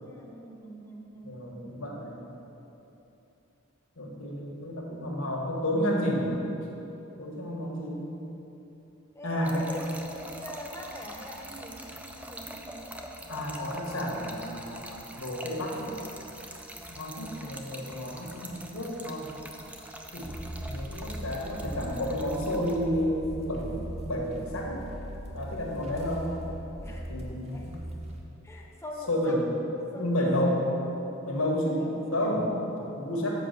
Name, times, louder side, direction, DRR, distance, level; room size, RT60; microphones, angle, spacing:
voice 1, 0.0-1.5 9.1-13.0 26.8-27.8 28.4-29.4 29.9-30.2 31.8-33.0, left 1 dB, 15° left, 0 dB, 0.8 m, -44 dB
voice 2, 1.2-2.2 4.0-6.4 7.2-8.1 9.2-9.6 13.3-15.9 16.9-19.3 20.1-20.3 20.6-24.8 25.3-26.3 27.1-27.8 29.1-29.6 29.9-30.6 31.2-31.8 32.1-32.6 33.0-33.3, equal, 85° left, -2 dB, 1.6 m, -31 dB
Trickle dribble / Fill (with liquid), 9.4-22.9, right 1 dB, 5° right, 0.4 m, -44 dB
sound 1, 20.2-28.2, equal, 30° right, 0.9 m, -40 dB
7.8 x 5.1 x 6.6 m, 2.9 s
head